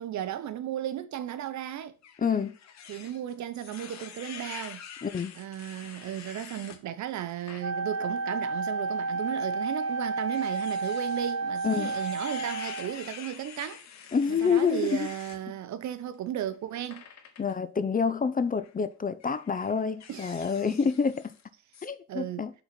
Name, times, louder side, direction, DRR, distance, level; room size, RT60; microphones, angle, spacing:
voice 1, 0.0-1.9 2.9-4.8 5.4-13.8 14.3-17.0 20.1-20.7 22.1-22.5, right 11 dB, 65° right, 0.8 m, -35 dB
sound 1, 2.0-6.8 7.3-7.6 8.1-8.2 9.3-15.4 16.9-17.5 18.5-18.7 19.2-21.4 21.7-21.9, left 8 dB, 65° left, 1.1 m, -46 dB
voice 2, 2.2-2.6 5.0-5.3 11.6-11.9 14.1-15.1 17.4-21.3 21.8-22.5, left 6 dB, 30° left, 0.7 m, -27 dB
Wind instrument woodwind instrument, 7.6-13.1, right 3 dB, 50° right, 1.4 m, -31 dB
5.7 x 4.0 x 5.9 m
cardioid pair, 90°, 30 cm